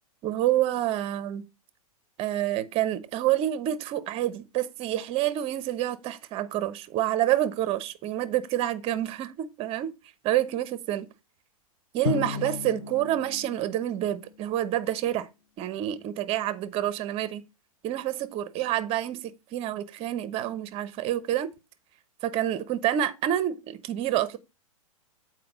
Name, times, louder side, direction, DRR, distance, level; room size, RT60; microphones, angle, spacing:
voice 1, 0.2-1.4 2.2-9.9 10.2-11.1 11.9-15.3 15.6-17.4 17.8-21.5 22.2-24.4, right 12 dB, 30° right, 0.9 m, -28 dB
Drum, 12.0-14.7, left 8 dB, 75° left, 0.7 m, -35 dB
7.9 x 4.5 x 5.0 m
hypercardioid pair, 115°, 18 cm